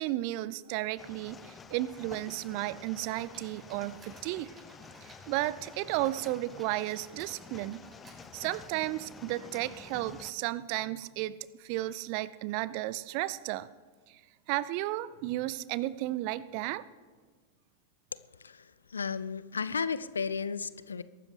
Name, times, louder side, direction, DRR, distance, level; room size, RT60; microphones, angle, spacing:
voice 1, 0.0-4.5 5.0-7.8 8.3-13.7 14.1-14.2 14.5-16.8, right 16 dB, 45° right, 18 dB, 0.4 m, -33 dB
sound 1, 1.0-10.3, left 5 dB, 20° left, 0.7 m, -50 dB
sound 2, 2.8-5.8 6.0-8.3, right 3 dB, 20° right, 5.4 m, -57 dB
voice 2, 18.4-21.0, left 5 dB, 75° left, 16 dB, 0.4 m, -34 dB
22.0 x 12.5 x 3.3 m, 1.5 s
figure-of-eight pair, 90°, 0 cm